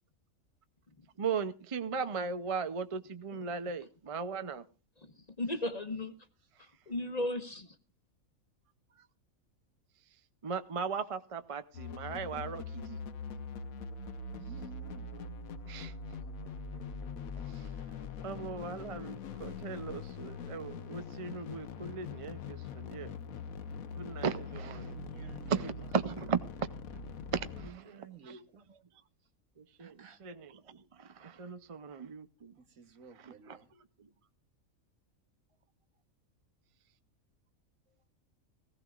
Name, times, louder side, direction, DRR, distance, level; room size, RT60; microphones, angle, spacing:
voice 1, 1.2-4.7 9.0-9.1 10.4-13.0 15.6-15.9 17.3-17.7 18.2-23.1 23.9-24.9 25.5-26.4 27.3-28.0 28.3-28.4 29.6-32.5 33.2-33.6 34.0-34.1, right 5 dB, 40° right, 0.5 m, -37 dB
voice 2, 5.0-6.2 6.6-7.8, left 1 dB, 30° left, 1.1 m, -36 dB
sound 1, 11.7-27.7, left 4 dB, 80° left, 1.3 m, -43 dB
voice 3, 14.3-15.1 24.8-25.7 27.5-28.6 29.8-30.2 32.6-33.7, right 6 dB, 85° right, 1.8 m, -53 dB
19.0 x 15.5 x 2.4 m
omnidirectional pair, 1.4 m